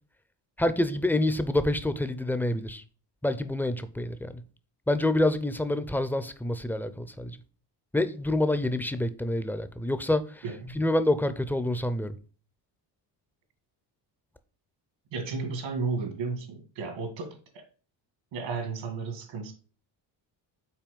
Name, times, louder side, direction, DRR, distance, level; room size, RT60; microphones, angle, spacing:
voice 1, 0.6-2.8 3.2-4.4 4.9-7.4 7.9-10.4 10.7-12.1, left 1 dB, 5° left, 0.4 m, -27 dB
voice 2, 10.4-10.8 15.1-17.6 18.3-19.5, right 4 dB, 85° right, 2.0 m, -33 dB
5.9 x 4.2 x 5.1 m
cardioid pair, 125°, 44 cm